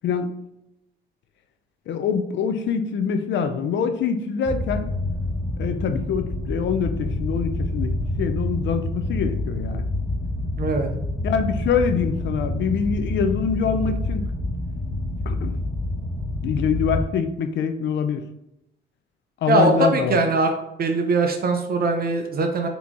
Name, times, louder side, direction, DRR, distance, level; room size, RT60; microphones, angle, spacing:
voice 1, 1.9-4.9 5.6-7.9 8.2-9.9 11.2-14.3 15.3-15.6 16.4-18.2 19.4-20.2, left 6 dB, 65° left, 8 dB, 0.5 m, -24 dB
sound 1, 4.4-17.0, left 1 dB, 20° left, 0.9 m, -27 dB
voice 2, 10.6-10.9 19.5-20.5 20.8-22.7, right 3 dB, 50° right, 5 dB, 0.6 m, -21 dB
4.0 x 2.9 x 3.6 m, 0.86 s
cardioid pair, 90°, 20 cm